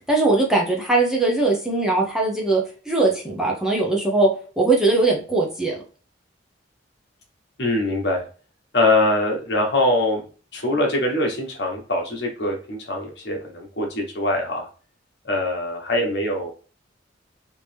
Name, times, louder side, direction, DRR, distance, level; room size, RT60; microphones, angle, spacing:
voice 1, 0.1-4.3 4.6-5.8, right 2 dB, 5° right, -2 dB, 0.8 m, -20 dB
voice 2, 7.6-8.2 8.7-10.2 10.5-14.7 15.2-16.5, left 1 dB, 60° left, 1 dB, 1.2 m, -23 dB
3.4 x 2.9 x 3.4 m, 0.38 s
head